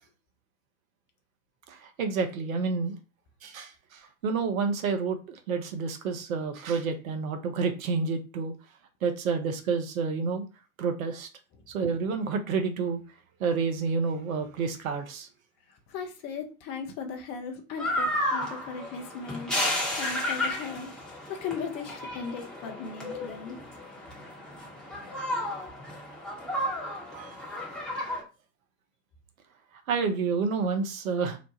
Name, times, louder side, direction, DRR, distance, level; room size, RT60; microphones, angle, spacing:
voice 1, 1.7-3.0 3.4-8.5 9.0-10.5 10.8-11.3 11.7-13.0 13.4-15.3 27.1-27.3 29.9-31.4, right 5 dB, 65° right, 7 dB, 0.7 m, -29 dB
voice 2, 15.7-20.9 21.3-23.6, left 5 dB, 35° left, 3 dB, 0.6 m, -37 dB
sound 1, 17.8-28.2, left 1 dB, ahead, 0.9 m, -33 dB
2.9 x 2.1 x 2.8 m, 0.32 s
figure-of-eight pair, 85°, 46 cm